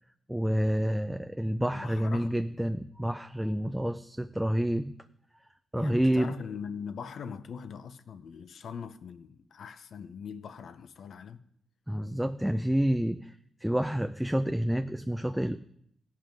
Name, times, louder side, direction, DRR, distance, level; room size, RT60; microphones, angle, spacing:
voice 1, 0.3-4.9 5.7-6.3 11.9-13.4 13.6-15.6, equal, 5° right, 0.4 m, -28 dB
voice 2, 1.7-2.4 5.8-11.4, left 6 dB, 70° left, 0.6 m, -41 dB
16.0 x 5.6 x 5.1 m
cardioid pair, 100°, 0 cm